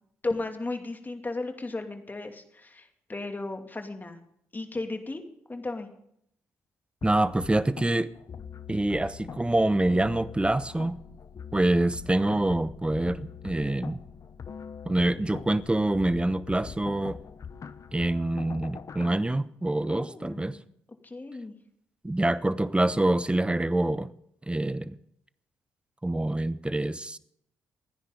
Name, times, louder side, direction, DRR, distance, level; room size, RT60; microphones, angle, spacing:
voice 1, 0.2-4.2 4.5-5.2 5.5-5.9 19.9-20.5 21.0-21.5, left 2 dB, 25° left, 5 dB, 2.6 m, -35 dB
sound 1, 7.0-19.1, left 7 dB, 50° left, 0.8 m, -42 dB
voice 2, 7.0-8.1 8.7-11.0 11.5-14.0 14.8-17.2 17.9-20.6 22.0-24.1 24.5-25.0 26.0-27.2, right 1 dB, 15° right, 15 dB, 1.0 m, -26 dB
27.5 x 10.0 x 4.0 m, 0.73 s
hypercardioid pair, 45°, 7 cm